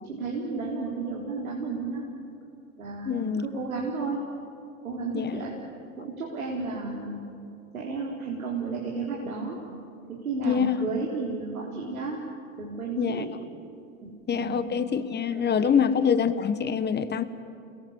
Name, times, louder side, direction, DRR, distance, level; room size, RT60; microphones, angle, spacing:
voice 1, 0.0-2.1 2.8-4.2 4.8-5.6 6.0-7.2 7.7-9.6 10.1-12.2 12.6-13.3 14.0-14.6 15.3-15.9, right 4 dB, 85° right, -3 dB, 3.9 m, -33 dB
voice 2, 3.0-3.5 5.1-5.4 10.4-10.8 13.0-13.2 14.3-17.2, left 7 dB, 25° left, 12 dB, 1.4 m, -25 dB
30.0 x 21.0 x 7.3 m, 2.5 s
hypercardioid pair, 90°, 41 cm